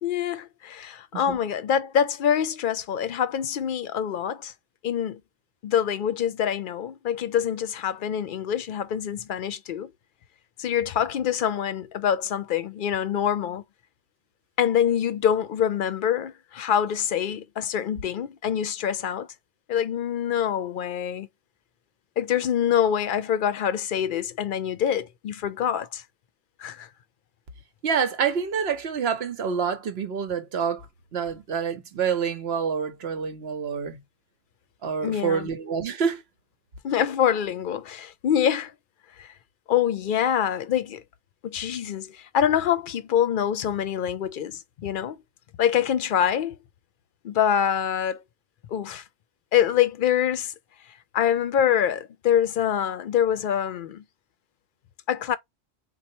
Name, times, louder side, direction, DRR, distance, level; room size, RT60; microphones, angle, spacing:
voice 1, 0.0-4.5 4.8-5.2 5.6-9.9 10.6-13.6 14.6-19.3 19.7-21.3 22.2-26.0 26.6-26.9 35.0-35.5 36.8-38.7 39.2-39.3 39.7-41.0 41.4-45.2 45.6-46.6 47.2-48.2 48.7-49.0 49.5-50.5 51.1-54.0 55.1-55.4, left 9 dB, 60° left, 0.6 m, -25 dB
voice 2, 27.8-30.9 31.1-34.0 34.8-36.2, right 6 dB, 80° right, 1.1 m, -27 dB
4.2 x 2.4 x 2.7 m
omnidirectional pair, 1.0 m